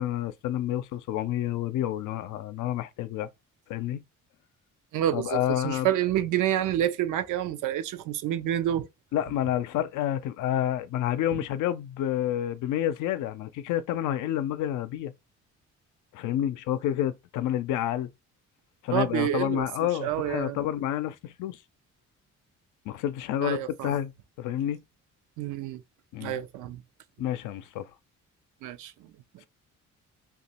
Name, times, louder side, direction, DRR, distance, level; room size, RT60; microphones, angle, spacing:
voice 1, 0.0-3.3 3.7-4.0 5.1-5.9 9.1-15.1 16.1-18.1 18.8-21.6 22.9-24.1 24.4-24.8 26.1-26.4 27.2-27.8, left 11 dB, 85° left, 0.5 m, -29 dB
voice 2, 4.9-8.9 18.9-19.7 20.0-20.6 23.4-23.9 25.4-25.8 26.2-26.8 28.6-29.4, right 11 dB, 85° right, 0.6 m, -28 dB
2.9 x 2.4 x 4.1 m
cardioid pair, 90°, 30 cm